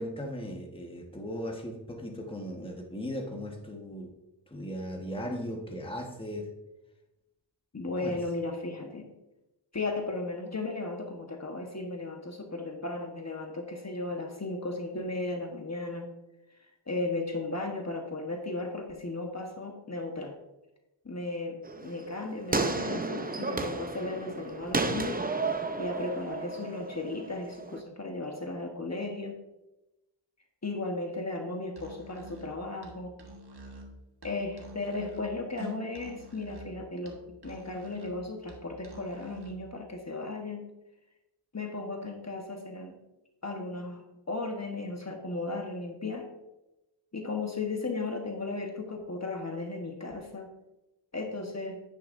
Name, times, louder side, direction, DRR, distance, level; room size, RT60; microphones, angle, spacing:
voice 1, 0.0-4.1 4.5-6.5 8.0-8.2, equal, 10° left, 2 dB, 1.3 m, -37 dB
voice 2, 7.7-9.1 9.7-16.1 16.9-20.4 21.0-25.3 25.8-29.4 30.6-33.2 34.2-40.6 41.5-43.0 43.4-46.3 47.1-50.5 51.1-51.8, left 2 dB, 35° left, 2 dB, 1.2 m, -35 dB
sound 1, 21.6-27.8, right 3 dB, 20° right, 0.7 m, -33 dB
Musical instrument, 31.7-39.7, equal, 60° right, 1.5 m, -47 dB
10.0 x 9.2 x 2.6 m, 0.99 s
wide cardioid pair, 70°, 45 cm